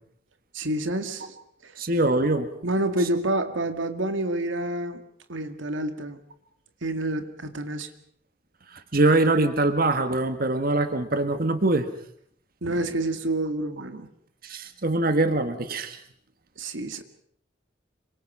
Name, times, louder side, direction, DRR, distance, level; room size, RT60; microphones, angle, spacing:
voice 1, 0.5-1.4 1.6-1.7 2.6-5.0 5.3-6.2 6.8-7.9 12.6-14.1 16.6-17.0, right 1 dB, 85° right, 8 dB, 2.0 m, -28 dB
voice 2, 1.8-2.5 8.7-11.9 14.4-16.0, right 2 dB, 50° right, 8 dB, 1.7 m, -23 dB
27.0 x 25.0 x 5.7 m, 0.66 s
head